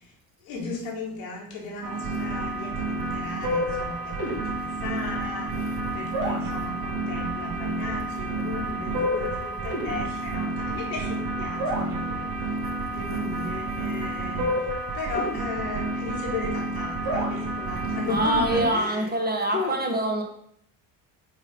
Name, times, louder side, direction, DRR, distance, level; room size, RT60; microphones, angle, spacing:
voice 1, 0.4-12.3 12.9-14.7 14.9-19.1 19.5-19.7, left 3 dB, 80° left, -1 dB, 1.8 m, -35 dB
sound 1, 1.8-18.7, right 1 dB, 50° right, 2.1 m, -29 dB
voice 2, 18.1-20.2, right 1 dB, 20° right, 2 dB, 1.4 m, -25 dB
5.3 x 3.7 x 5.1 m, 0.68 s
hypercardioid pair, 60°, 50 cm